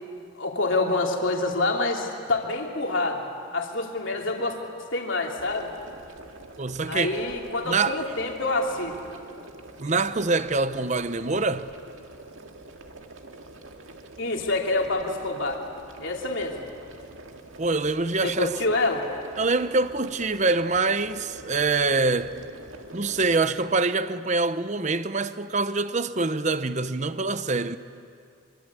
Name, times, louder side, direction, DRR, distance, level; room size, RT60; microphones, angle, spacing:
voice 1, 0.3-3.3 3.5-4.5 4.8-5.7 6.9-8.9 14.2-15.6 16.0-16.6 18.2-19.0, left 2 dB, 65° left, 3.0 m, -27 dB
sound 1, 5.4-23.5, right 2 dB, 70° right, 2.0 m, -45 dB
voice 2, 6.6-7.2 7.7-8.0 9.8-11.7 17.6-18.6 19.4-22.4 22.9-27.8, right 3 dB, 35° right, 0.8 m, -25 dB
25.5 x 25.5 x 8.4 m
head